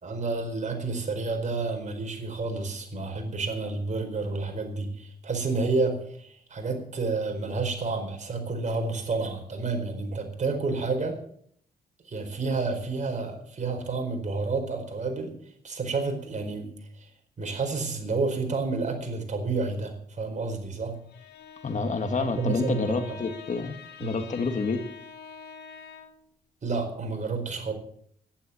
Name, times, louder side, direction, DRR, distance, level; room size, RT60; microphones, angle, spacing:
voice 1, 0.0-11.2 12.1-15.3 15.6-17.1 17.4-21.0 22.2-23.2 24.0-24.2 26.6-27.7, right 3 dB, 45° right, 4 dB, 4.6 m, -30 dB
Bowed string instrument, 20.9-26.3, left 6 dB, 85° left, 1.8 m, -46 dB
voice 2, 21.6-23.7 24.0-24.8, left 4 dB, 45° left, 7 dB, 2.1 m, -28 dB
11.5 x 11.0 x 8.1 m, 0.64 s
cardioid pair, 80°, 17 cm